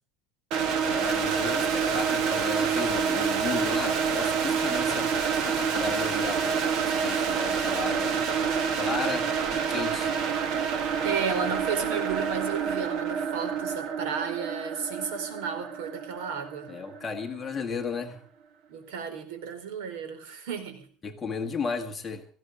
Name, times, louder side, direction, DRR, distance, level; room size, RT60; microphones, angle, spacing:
sound 1, 0.5-17.3, right 6 dB, 45° right, 1.5 m, -27 dB
voice 1, 0.9-5.1 5.5-8.2 8.7-10.3 16.7-18.2 21.0-22.3, left 5 dB, 15° left, 4 dB, 1.6 m, -34 dB
voice 2, 11.0-16.7 18.7-20.9, right 6 dB, 75° right, 9 dB, 4.4 m, -33 dB
18.0 x 14.5 x 5.0 m, 0.42 s
cardioid pair, 175°, 0 cm